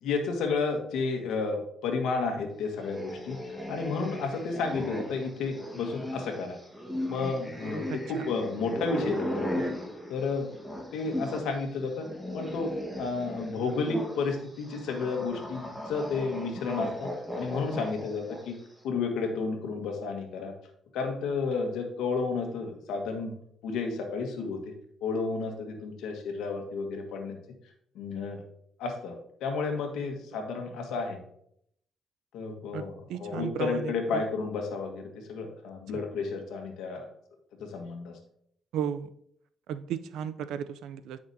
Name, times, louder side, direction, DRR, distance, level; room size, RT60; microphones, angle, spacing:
voice 1, 0.0-6.6 7.1-9.6 10.1-12.1 12.3-12.7 13.0-18.5 18.8-20.5 20.9-23.3 23.6-24.7 25.0-27.4 27.9-28.4 28.8-31.2 32.3-37.1 37.6-38.2, left 4 dB, 85° left, 3 dB, 1.4 m, -32 dB
sound 1, 2.8-11.5 11.8-18.6, left 1 dB, ahead, 1.4 m, -37 dB
voice 2, 7.9-8.3 32.7-34.2 38.7-39.1 39.7-41.2, right 8 dB, 85° right, 12 dB, 0.4 m, -35 dB
9.1 x 5.9 x 2.7 m, 0.70 s
cardioid pair, 90°, 0 cm